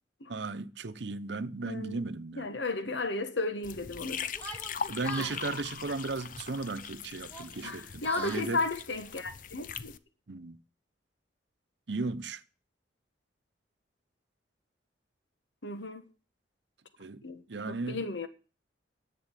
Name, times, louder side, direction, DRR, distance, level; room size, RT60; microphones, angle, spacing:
voice 1, 0.3-2.5 4.9-8.6 10.3-10.6 11.9-12.4 17.0-18.1, right 3 dB, 70° right, 0.8 m, -36 dB
voice 2, 1.6-2.0 2.4-4.3 5.2-5.3 7.6-9.9 15.6-16.0 17.2-17.4 17.7-18.3, left 3 dB, 75° left, 1.5 m, -34 dB
sound 1, 3.6-10.0, left 7 dB, 45° left, 0.6 m, -41 dB
Yell, 4.3-5.4 6.5-6.9 7.2-8.5, right 3 dB, 10° left, 3.3 m, -42 dB
10.5 x 7.8 x 9.1 m
head